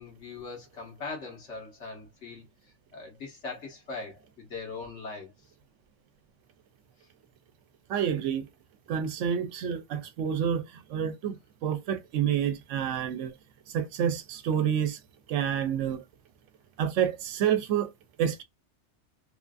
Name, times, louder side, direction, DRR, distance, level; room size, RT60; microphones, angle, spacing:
voice 1, 0.0-2.4 2.9-5.3, left 4 dB, 75° left, 1.5 m, -40 dB
voice 2, 7.9-8.5 8.9-11.4 11.6-13.3 13.7-15.0 15.3-16.0 16.8-17.9 18.2-18.4, right 8 dB, 90° right, 0.9 m, -28 dB
3.2 x 2.5 x 2.3 m
omnidirectional pair, 1.2 m